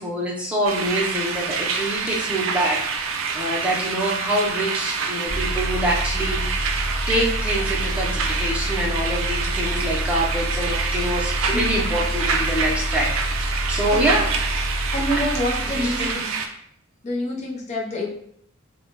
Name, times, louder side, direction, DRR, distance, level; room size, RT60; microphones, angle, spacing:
voice 1, 0.0-2.8 3.3-6.6 7.1-14.3 15.8-16.3, right 1 dB, 5° right, -4 dB, 0.6 m, -25 dB
sound 1, 0.7-16.5, right 5 dB, 70° right, 0.4 m, -27 dB
sound 2, 5.3-16.1, equal, 80° left, 0.9 m, -28 dB
voice 2, 14.9-16.0 17.0-18.1, left 1 dB, 35° left, -3 dB, 0.6 m, -26 dB
3.2 x 2.1 x 2.9 m, 0.71 s
head